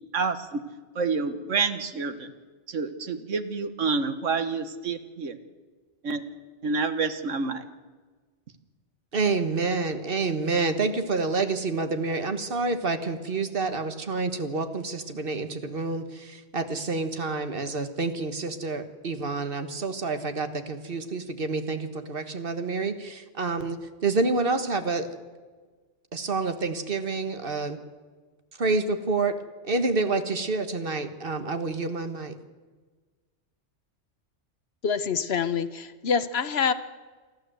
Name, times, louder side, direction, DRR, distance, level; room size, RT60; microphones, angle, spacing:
voice 1, 0.1-0.6 0.9-2.3 2.7-5.4 6.0-6.2 6.6-7.6, right 4 dB, 90° right, 10 dB, 1.7 m, -28 dB
voice 2, 9.1-25.1 26.1-27.8 28.6-29.3 29.6-32.3, right 3 dB, 50° right, 8 dB, 1.7 m, -28 dB
voice 3, 34.8-36.7, left 6 dB, 60° left, 13 dB, 1.1 m, -26 dB
28.0 x 12.0 x 7.9 m, 1.4 s
omnidirectional pair, 1.3 m